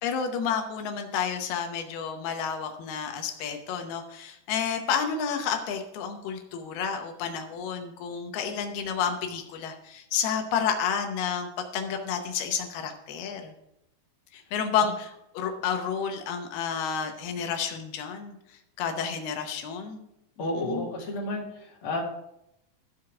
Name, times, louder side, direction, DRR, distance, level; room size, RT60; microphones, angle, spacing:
voice 1, 0.0-13.5 14.3-18.3 18.8-20.0 20.4-20.9, left 7 dB, 85° left, 5 dB, 2.9 m, -30 dB
voice 2, 20.4-22.0, left 1 dB, 40° left, -2 dB, 2.7 m, -32 dB
14.0 x 4.8 x 6.0 m, 0.82 s
omnidirectional pair, 4.4 m